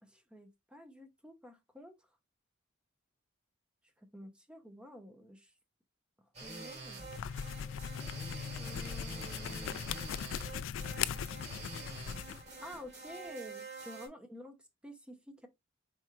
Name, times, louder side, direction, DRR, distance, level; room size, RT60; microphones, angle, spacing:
voice 1, 0.0-2.1 4.0-5.5 6.4-7.2 8.6-9.9 12.6-14.5 14.8-15.5, equal, 5° right, 0.6 m, -50 dB
sound 1, 6.3-14.1, right 3 dB, 35° right, 2.3 m, -47 dB
sound 2, 7.0-12.4, left 8 dB, 70° left, 0.3 m, -39 dB
4.6 x 4.3 x 2.3 m
head